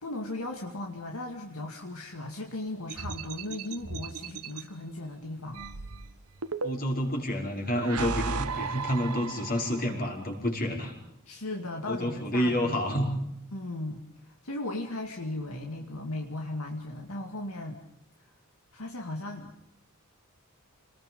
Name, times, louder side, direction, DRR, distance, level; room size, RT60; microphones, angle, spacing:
voice 1, 0.0-5.7 11.3-12.8 13.5-17.8 18.7-19.5, left 2 dB, 70° left, 2 dB, 2.2 m, -37 dB
sound 1, 2.9-4.6 5.5-7.1 7.7-9.9, right 4 dB, 85° right, 1.4 m, -35 dB
voice 2, 6.6-10.9 11.9-13.1, equal, 40° left, 0 dB, 5.4 m, -29 dB
28.5 x 20.0 x 5.4 m, 0.84 s
head